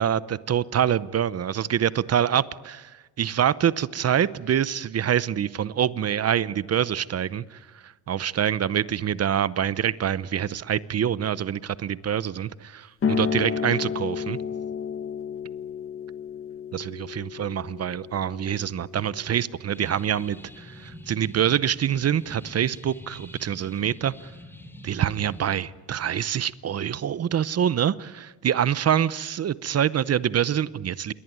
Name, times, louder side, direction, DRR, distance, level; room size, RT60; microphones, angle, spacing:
voice 1, 0.0-2.9 3.2-14.4 16.7-24.1 24.8-31.1, right 9 dB, 40° right, 18 dB, 0.8 m, -25 dB
sound 1, 13.0-20.2, left 6 dB, 35° left, 1.7 m, -32 dB
sound 2, 19.7-25.5, left 1 dB, 5° left, 3.2 m, -45 dB
28.0 x 22.5 x 9.5 m, 1.3 s
cardioid pair, 120°, 38 cm